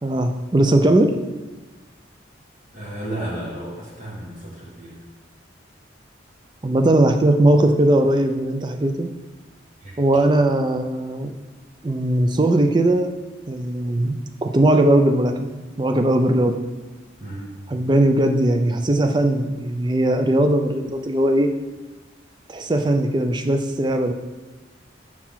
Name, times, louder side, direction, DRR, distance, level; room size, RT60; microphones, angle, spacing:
voice 1, 0.0-1.1 6.6-9.1 10.0-11.3 11.8-13.1 13.5-16.6 17.7-21.5 22.5-24.1, right 1 dB, 20° right, 6 dB, 0.4 m, -19 dB
voice 2, 2.7-5.0 9.8-10.0 17.2-17.6, right 1 dB, 40° right, -6 dB, 1.6 m, -33 dB
5.7 x 4.7 x 5.7 m, 1.2 s
head